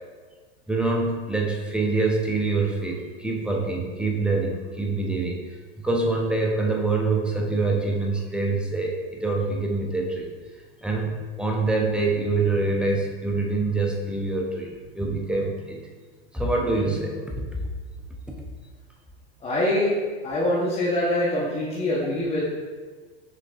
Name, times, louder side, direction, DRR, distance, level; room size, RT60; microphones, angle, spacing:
voice 1, 0.7-5.4 5.8-10.3 10.8-15.9 16.3-17.7 18.3-18.4, right 3 dB, 5° right, 0 dB, 0.4 m, -25 dB
voice 2, 19.4-19.9 20.2-22.5, left 1 dB, 20° left, -7 dB, 0.8 m, -24 dB
6.2 x 3.3 x 2.4 m, 1.4 s
hypercardioid pair, 115°, 32 cm